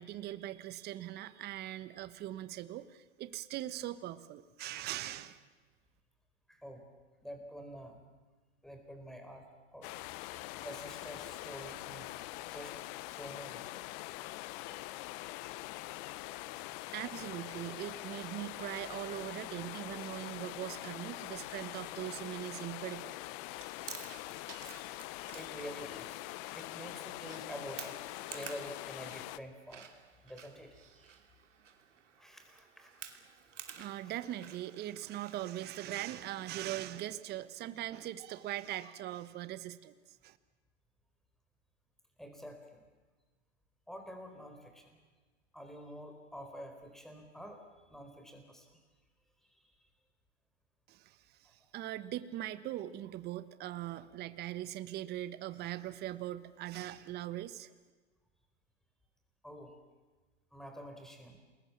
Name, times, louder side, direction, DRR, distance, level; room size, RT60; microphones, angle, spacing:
voice 1, 0.0-5.4 16.9-23.1 33.7-39.9 40.2-40.4 50.9-57.7, right 13 dB, 30° right, 13 dB, 1.2 m, -41 dB
voice 2, 6.5-6.8 7.2-8.0 8.6-9.4 9.7-9.9 10.2-12.2 12.5-12.8 13.1-13.7 24.0-24.4 25.3-26.2 26.5-28.0 28.2-29.9 30.2-31.2 32.2-32.9 42.2-42.8 43.9-45.0 45.5-48.8 49.4-49.7 51.4-51.6 59.4-59.7 60.5-61.4, equal, ahead, 5 dB, 4.4 m, -48 dB
sound 1, 9.8-29.4, left 18 dB, 40° left, 0.8 m, -44 dB
Chewing mastication, 23.5-36.6, right 7 dB, 85° right, 2.9 m, -53 dB
28.5 x 21.5 x 7.2 m, 1.3 s
hypercardioid pair, 125°, 36 cm